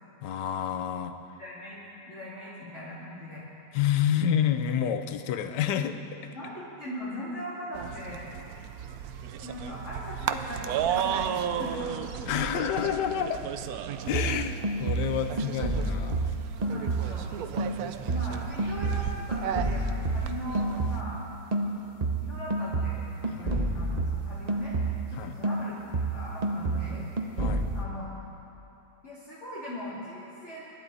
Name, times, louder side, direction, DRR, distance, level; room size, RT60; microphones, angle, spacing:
voice 1, 0.2-1.2 3.7-6.3 12.3-13.4 14.1-16.3 23.3-23.6 25.1-25.3 27.4-27.7, left 9 dB, 65° left, 8 dB, 1.2 m, -29 dB
voice 2, 1.4-1.8 2.1-3.4 6.3-8.3 9.4-12.0 15.2-16.1 16.6-17.3 18.1-21.2 22.2-24.7 25.1-27.0 27.7-28.1 29.0-30.6, left 1 dB, 35° left, -9 dB, 3.0 m, -40 dB
sound 1, 7.7-21.0, right 9 dB, 90° right, 0.8 m, -34 dB
sound 2, 14.1-17.3 17.6-21.2 21.5-25.2 25.4-27.9, right 2 dB, 50° right, 0.4 m, -29 dB
26.0 x 12.0 x 4.1 m, 2.8 s
omnidirectional pair, 2.3 m